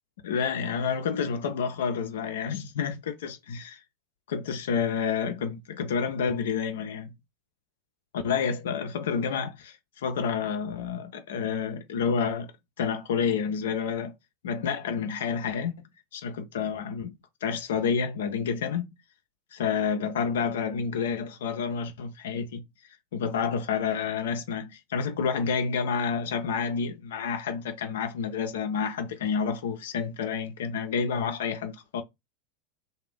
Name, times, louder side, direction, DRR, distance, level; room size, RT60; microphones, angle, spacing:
voice 1, 0.2-3.8 4.3-7.1 8.1-12.5 12.8-14.1 14.4-15.7 16.1-17.1 17.4-18.9 19.5-22.6 23.1-32.0, left 6 dB, 65° left, 0.3 m, -29 dB
2.4 x 2.0 x 3.4 m
figure-of-eight pair, 85°, 0 cm